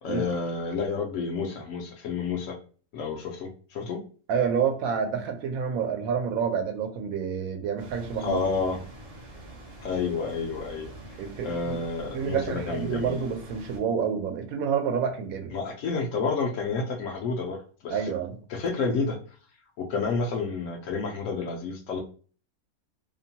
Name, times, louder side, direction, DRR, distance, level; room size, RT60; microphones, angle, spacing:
voice 1, 0.0-2.6 2.9-4.0 8.2-8.8 9.8-11.2 11.4-13.2 15.5-18.1 18.5-19.2 19.8-22.0, left 4 dB, 70° left, 2 dB, 0.8 m, -30 dB
voice 2, 4.3-8.4 11.2-11.8 12.1-15.5 17.9-18.4, right 7 dB, 75° right, 5 dB, 1.0 m, -28 dB
sound 1, 7.8-13.8, right 2 dB, 50° right, 0.4 m, -45 dB
2.8 x 2.2 x 2.7 m, 0.40 s
omnidirectional pair, 1.5 m